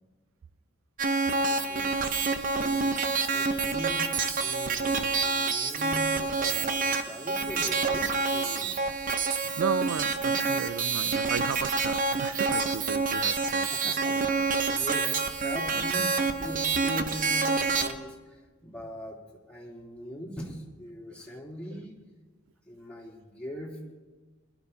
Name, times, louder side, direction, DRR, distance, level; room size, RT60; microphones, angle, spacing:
sound 1, 1.0-17.9, right 4 dB, 45° right, 0.8 m, -27 dB
voice 1, 1.4-2.2 2.5-3.0 3.3-8.8 9.4-9.5 10.2-10.4 13.2-19.2 19.5-22.0 22.7-23.8, equal, 5° left, 3.2 m, -42 dB
voice 2, 9.6-13.7 14.1-14.2 14.7-14.8, right 6 dB, 85° right, 0.4 m, -34 dB
23.0 x 12.0 x 2.8 m
head